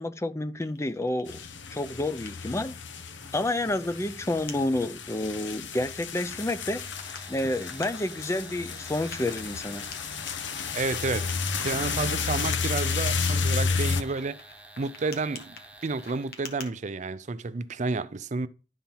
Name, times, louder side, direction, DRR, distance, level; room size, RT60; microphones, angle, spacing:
voice 1, 0.0-1.4 1.7-2.7 3.3-6.8 7.3-9.9, left 1 dB, 15° left, 0.5 m, -29 dB
sound 1, 0.6-1.5 1.9-4.2 4.5-4.6 5.1-5.5 6.3-8.5 9.1-11.9 12.5-16.7, left 5 dB, 55° left, 1.6 m, -47 dB
sound 2, 1.3-14.0, left 5 dB, 80° left, 1.0 m, -32 dB
sound 3, 6.6-16.5, right 1 dB, 5° right, 1.2 m, -50 dB
voice 2, 10.7-14.4 14.8-15.6 15.8-18.5, right 3 dB, 40° right, 0.5 m, -31 dB
11.5 x 4.4 x 5.5 m
head